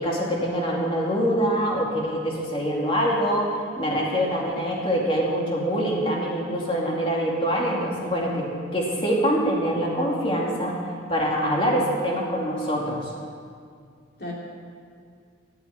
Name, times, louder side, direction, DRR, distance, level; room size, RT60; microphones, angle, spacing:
voice 1, 0.0-8.5 8.7-10.8 11.1-13.1, equal, 30° left, -3 dB, 2.6 m, -24 dB
voice 2, 7.8-8.5 14.2-14.3, left 2 dB, 55° left, -3 dB, 3.2 m, -36 dB
15.5 x 6.9 x 9.8 m, 2.2 s
head